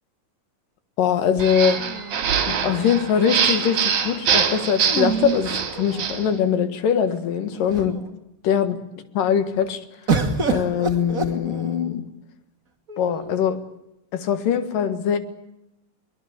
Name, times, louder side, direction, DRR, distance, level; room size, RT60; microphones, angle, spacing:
voice 1, 1.0-1.8 2.5-8.0 8.4-8.8 9.1-9.8 10.5-12.0 13.0-13.6 14.1-15.2, left 8 dB, 70° left, 10 dB, 3.3 m, -22 dB
sound 1, 1.4-6.3, right 7 dB, 55° right, 3.5 m, -24 dB
sound 2, 1.8-2.9 4.8-6.4 7.1-7.2 7.5-8.1 10.1-12.0 12.9-13.6, right 5 dB, 25° right, 2.2 m, -28 dB
23.0 x 21.5 x 8.4 m, 0.88 s
omnidirectional pair, 4.1 m